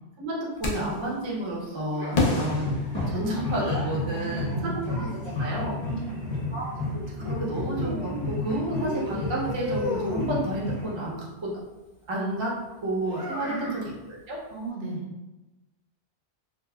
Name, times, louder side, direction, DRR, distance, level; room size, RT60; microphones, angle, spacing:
voice 1, 0.2-2.7 3.1-5.1 5.4-5.8 6.5-11.6 12.1-12.5 12.8-14.4, right 1 dB, 35° right, -4 dB, 0.5 m, -31 dB
sound 1, 0.6-1.1 2.1-3.7, left 2 dB, 50° left, 0.5 m, -28 dB
Child speech kid speaking, 1.9-3.9 4.8-6.1 7.2-8.4 8.7-10.5 13.0-13.9, left 1 dB, 25° left, 1.0 m, -35 dB
sound 2, 2.4-11.2, left 2 dB, 70° left, 0.9 m, -32 dB
voice 2, 4.1-4.9 5.9-6.7 13.4-13.7 14.5-15.0, right 3 dB, 65° right, -2 dB, 0.8 m, -36 dB
3.7 x 2.1 x 2.2 m, 1.0 s
omnidirectional pair, 1.2 m